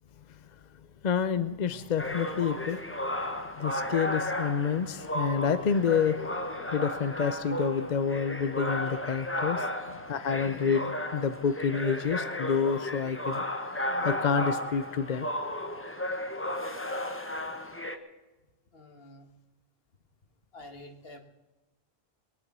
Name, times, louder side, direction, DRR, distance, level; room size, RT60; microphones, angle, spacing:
voice 1, 1.0-2.8 3.6-13.4 13.7-15.3, left 6 dB, 50° left, 12 dB, 0.7 m, -29 dB
sound 1, 2.0-18.0, left 1 dB, 15° left, 1.0 m, -34 dB
voice 2, 18.7-19.3 20.5-21.2, left 1 dB, 65° left, 5 dB, 1.9 m, -48 dB
22.5 x 9.5 x 6.1 m, 1.1 s
omnidirectional pair, 1.1 m